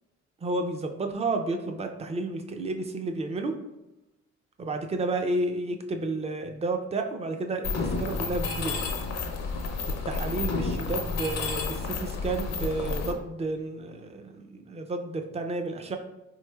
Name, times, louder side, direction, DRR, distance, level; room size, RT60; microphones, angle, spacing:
voice 1, 0.4-3.6 4.6-8.9 10.1-16.0, right 2 dB, 20° right, 5 dB, 0.4 m, -31 dB
Mechanisms, 7.6-13.1, left 4 dB, 60° left, 0.6 m, -30 dB
3.9 x 3.1 x 2.2 m, 0.98 s
cardioid pair, 90°, 30 cm